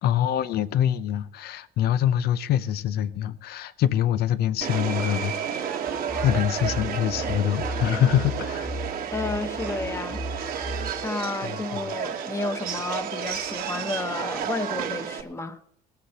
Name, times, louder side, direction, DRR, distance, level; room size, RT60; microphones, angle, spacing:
voice 1, 0.0-5.3 6.2-8.7 11.1-11.8, left 10 dB, 70° left, 0.7 m, -25 dB
Subway metro underground, 4.6-15.2, right 8 dB, 60° right, 1.3 m, -31 dB
sound 1, 5.9-11.1, left 1 dB, 5° right, 1.1 m, -35 dB
voice 2, 9.1-10.7 11.0-15.6, left 3 dB, 15° left, 1.2 m, -32 dB
18.5 x 14.5 x 2.9 m
cardioid pair, 110°, 17 cm